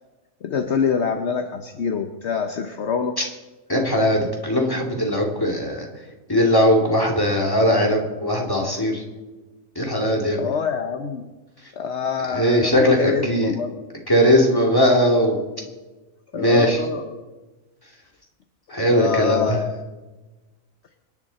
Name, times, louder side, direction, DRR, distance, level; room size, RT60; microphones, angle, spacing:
voice 1, 0.4-3.2 10.4-11.3 11.7-13.7 16.3-17.1 18.8-19.7, left 6 dB, 55° left, 6 dB, 1.1 m, -25 dB
voice 2, 3.7-5.9 6.3-9.0 9.8-10.4 12.3-13.5 14.1-15.4 16.3-16.8 18.7-19.6, equal, 15° left, 0 dB, 2.7 m, -19 dB
25.5 x 11.0 x 4.3 m, 1.2 s
omnidirectional pair, 1.4 m